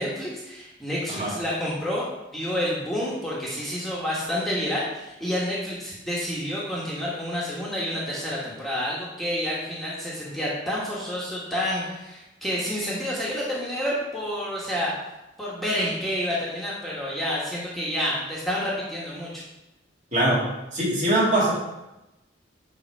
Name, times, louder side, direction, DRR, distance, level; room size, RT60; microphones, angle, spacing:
voice 1, 0.0-2.1 2.3-14.9 15.4-19.4, equal, ahead, -6 dB, 1.5 m, -29 dB
voice 2, 20.1-21.5, right 1 dB, 40° right, -5 dB, 2.2 m, -22 dB
10.5 x 3.7 x 4.7 m, 0.96 s
head